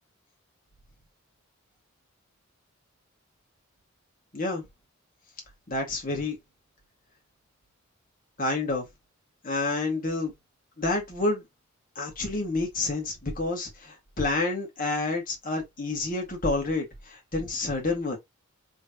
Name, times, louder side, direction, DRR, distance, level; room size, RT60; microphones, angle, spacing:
voice 1, 4.3-4.6 5.7-6.4 8.4-8.9 9.4-10.3 10.8-11.4 12.0-18.2, left 2 dB, 40° left, 1.9 m, -29 dB
3.9 x 3.7 x 2.9 m
head